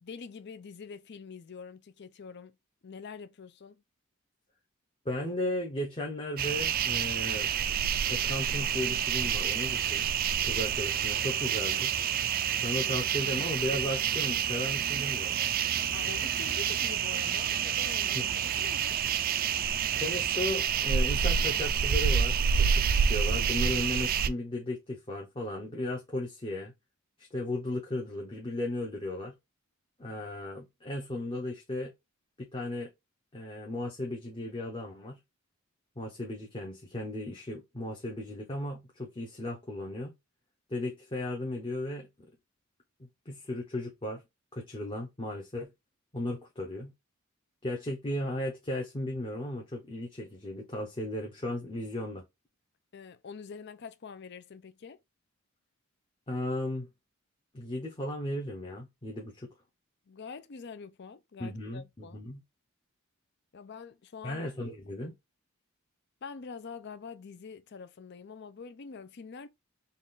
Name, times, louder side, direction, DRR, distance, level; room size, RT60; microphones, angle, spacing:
voice 1, 0.0-2.6 2.8-3.8 15.9-18.2 18.5-19.0 52.9-55.0 60.1-62.2 63.5-64.4 66.2-69.5, left 5 dB, 55° left, 0.5 m, -45 dB
voice 2, 5.0-7.5 8.1-10.1 10.4-11.9 12.6-15.4 18.1-18.3 19.9-26.7 27.3-29.3 30.0-31.9 32.4-32.9 33.3-35.2 36.0-40.1 40.7-42.3 43.3-44.2 44.5-45.7 46.1-46.9 47.6-52.2 56.3-56.9 57.5-59.5 61.4-62.4 64.2-65.1, left 1 dB, 25° left, 0.9 m, -35 dB
sound 1, 6.4-24.3, right 8 dB, 45° right, 0.4 m, -28 dB
4.1 x 2.5 x 3.6 m
head